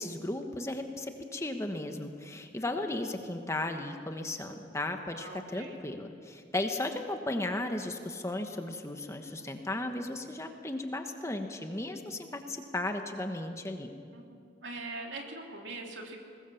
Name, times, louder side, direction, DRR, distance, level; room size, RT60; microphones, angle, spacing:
voice 1, 0.0-13.9, left 2 dB, 15° left, 5 dB, 1.2 m, -35 dB
voice 2, 5.1-5.8 14.1-14.4 14.6-16.2, right 2 dB, 75° right, 1 dB, 3.1 m, -42 dB
22.0 x 20.0 x 7.1 m, 2.3 s
head